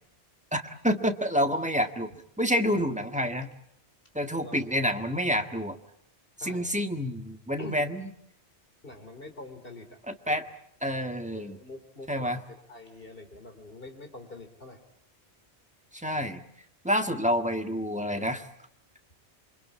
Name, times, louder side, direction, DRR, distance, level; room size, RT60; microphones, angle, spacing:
voice 1, 0.5-2.1 2.4-3.5 4.1-5.8 6.4-8.1 10.1-10.4 10.8-11.6 12.1-12.4 15.9-16.4 16.8-18.5, equal, 5° right, 6 dB, 1.5 m, -28 dB
voice 2, 6.4-6.7 7.6-7.9 8.8-10.0 10.3-10.4 11.3-14.8, left 2 dB, 55° left, 6 dB, 3.7 m, -45 dB
28.0 x 24.0 x 8.5 m, 0.71 s
omnidirectional pair, 1.1 m